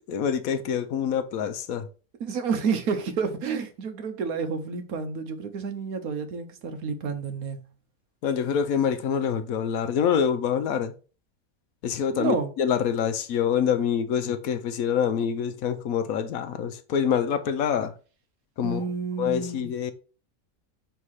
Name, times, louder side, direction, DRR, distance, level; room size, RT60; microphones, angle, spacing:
voice 1, 0.1-1.9 8.2-10.9 11.8-17.9 18.6-18.8 19.2-19.9, left 8 dB, 75° left, 1.1 m, -26 dB
voice 2, 2.2-7.7 12.1-12.5 18.6-19.7, right 5 dB, 75° right, 1.4 m, -30 dB
5.6 x 3.7 x 4.8 m
omnidirectional pair, 1.5 m